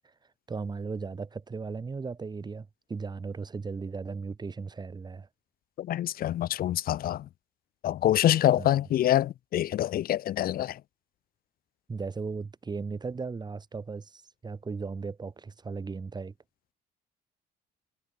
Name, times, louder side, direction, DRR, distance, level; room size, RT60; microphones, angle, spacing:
voice 1, 0.5-5.3 8.6-8.7 11.9-16.3, right 4 dB, 25° right, 3.5 m, -36 dB
voice 2, 5.8-7.3 7.8-10.8, left 12 dB, 60° left, 1.3 m, -26 dB
cardioid pair, 110°, 17 cm